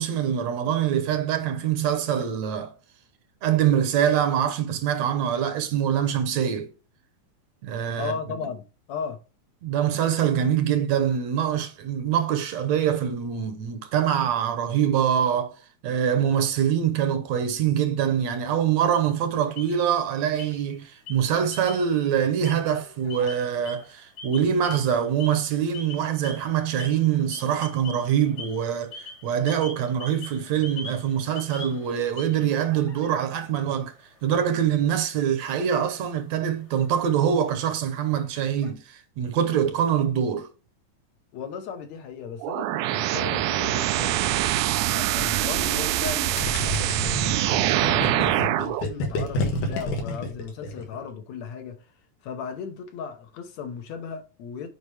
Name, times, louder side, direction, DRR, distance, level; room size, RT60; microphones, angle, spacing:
voice 1, 0.0-2.7 3.4-6.7 7.6-8.1 9.6-15.6 15.8-33.9 34.2-40.5, right 9 dB, 70° right, 2.0 m, -24 dB
voice 2, 8.0-9.2 41.3-44.5 44.9-46.5 46.8-51.9 52.2-54.7, left 6 dB, 70° left, 2.3 m, -36 dB
sound 1, 19.0-20.1 20.4-20.8 21.1-22.0 22.3-38.7, left 3 dB, 40° left, 1.0 m, -45 dB
sound 2, 42.4-48.8, right 14 dB, 90° right, 2.0 m, -24 dB
Gurgling, 46.4-51.1, left 1 dB, 90° left, 3.1 m, -29 dB
8.1 x 5.2 x 3.4 m
omnidirectional pair, 3.4 m